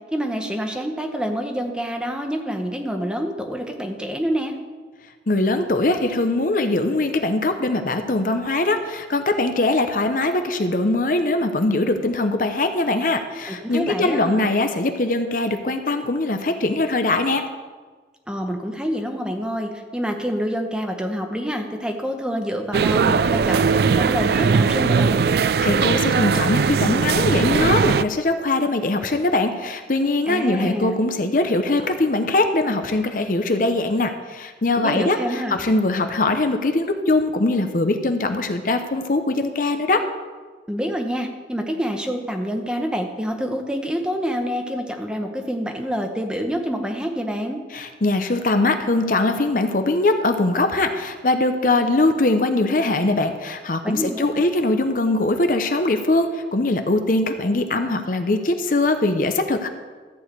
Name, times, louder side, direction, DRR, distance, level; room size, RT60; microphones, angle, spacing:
voice 1, 0.1-4.5 13.5-14.5 18.3-25.3 30.3-31.0 34.7-35.6 40.7-47.6 53.8-54.4, equal, 5° right, 3 dB, 0.9 m, -27 dB
voice 2, 5.3-17.4 25.6-40.0 47.7-59.7, left 2 dB, 50° left, 7 dB, 0.7 m, -21 dB
sound 1, 22.7-28.0, right 5 dB, 60° right, 0.3 m, -19 dB
14.0 x 4.8 x 8.2 m, 1.4 s
head